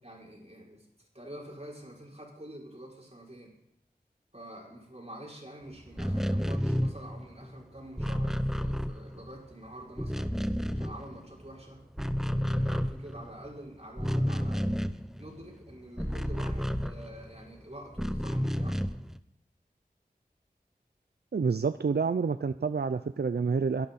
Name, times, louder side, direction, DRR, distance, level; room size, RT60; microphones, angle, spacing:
voice 1, 0.0-3.5 4.3-10.4 10.7-11.8 12.2-14.8 15.2-18.8, right 1 dB, 40° right, -3 dB, 6.0 m, -47 dB
sound 1, 5.9-9.5 9.8-11.5 11.8-17.4 17.9-19.2, equal, ahead, 0.9 m, -31 dB
voice 2, 21.3-23.9, right 5 dB, 80° right, 12 dB, 0.5 m, -28 dB
24.0 x 12.0 x 4.2 m, 0.79 s
wide cardioid pair, 40°, 17 cm